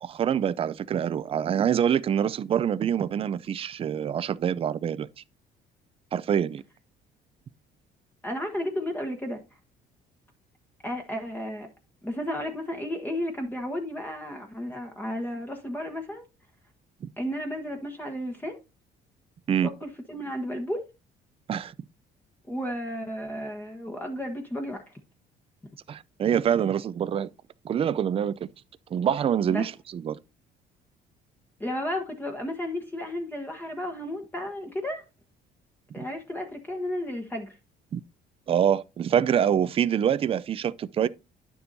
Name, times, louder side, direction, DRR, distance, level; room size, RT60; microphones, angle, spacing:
voice 1, 0.0-5.1 6.1-6.6 17.0-17.1 19.5-19.7 21.5-21.7 25.9-27.3 27.6-28.3 28.9-30.2 36.0-36.1 37.9-38.0 38.5-41.1, right 9 dB, 35° right, 0.4 m, -25 dB
voice 2, 8.2-9.4 10.8-11.7 12.0-16.2 17.2-18.6 19.6-20.8 22.5-24.9 29.5-29.7 31.6-35.0 35.9-37.6, left 1 dB, 10° left, 1.2 m, -33 dB
10.0 x 6.9 x 2.6 m
cardioid pair, 110°, 17 cm